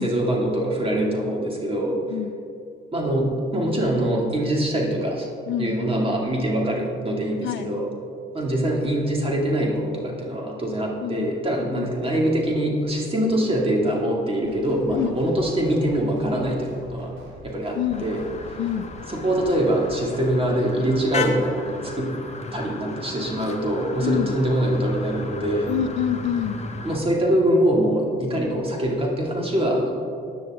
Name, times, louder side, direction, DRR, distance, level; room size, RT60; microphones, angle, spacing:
voice 1, 0.0-2.0 2.9-5.3 5.6-7.9 8.3-17.1 17.4-18.2 19.1-22.1 22.5-25.7 26.8-29.9, right 1 dB, 30° right, -1 dB, 2.8 m, -23 dB
sound 1, 14.4-20.1, right 1 dB, 75° right, 3.3 m, -44 dB
sound 2, 17.9-27.0, left 3 dB, 35° left, 1.3 m, -35 dB
voice 2, 18.6-18.9 24.0-24.3 25.7-26.6, left 10 dB, 70° left, 11 dB, 0.6 m, -26 dB
15.5 x 9.9 x 3.9 m, 2.4 s
cardioid pair, 90°, 20 cm